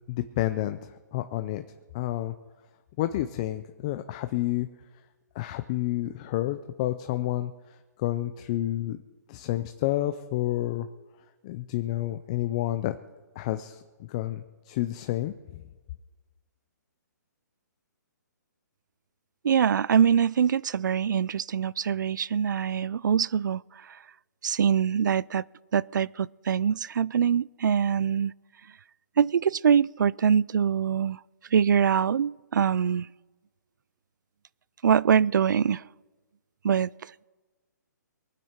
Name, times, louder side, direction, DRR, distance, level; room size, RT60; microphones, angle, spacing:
voice 1, 0.1-1.6 1.9-2.3 3.0-4.7 5.4-7.5 8.0-9.0 9.3-10.9 11.4-13.0 13.4-15.6, left 15 dB, 20° left, 0.4 m, -30 dB
voice 2, 19.4-23.6 24.4-25.4 25.7-28.3 29.2-31.2 31.5-33.1 34.8-35.8 36.6-36.9, right 7 dB, 80° right, 0.4 m, -23 dB
23.5 x 9.4 x 4.5 m
hypercardioid pair, 170°, 10 cm